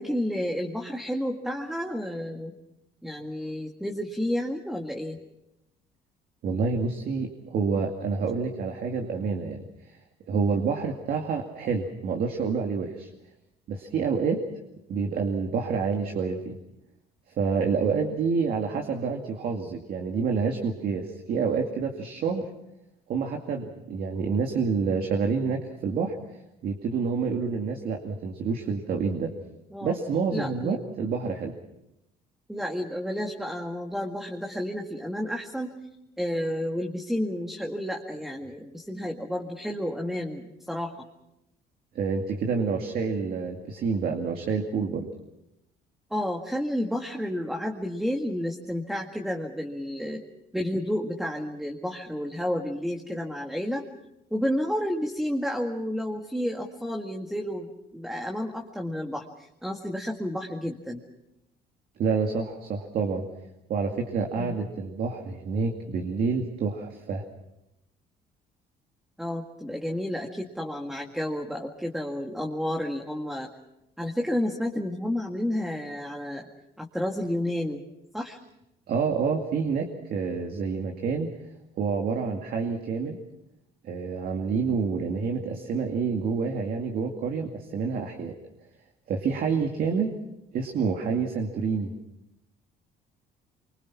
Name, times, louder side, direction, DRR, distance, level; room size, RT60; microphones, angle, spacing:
voice 1, 0.0-2.5 3.0-5.2 29.7-30.0 30.3-30.8 32.5-35.8 36.2-40.9 46.1-50.2 50.5-53.9 54.3-61.0 64.3-64.6 69.2-73.5 74.0-76.5 76.8-77.8 78.1-78.4, equal, ahead, 2 dB, 1.9 m, -31 dB
voice 2, 6.4-10.0 10.3-13.1 13.7-14.4 14.9-16.6 17.3-22.5 23.1-26.2 26.6-29.4 29.8-31.5 41.9-45.1 62.0-63.3 63.7-67.2 78.9-81.3 81.8-83.2 83.8-88.3 89.1-90.1 90.5-91.9, right 5 dB, 60° right, 3 dB, 2.4 m, -28 dB
25.5 x 24.0 x 6.0 m, 0.87 s
cardioid pair, 110°, 17 cm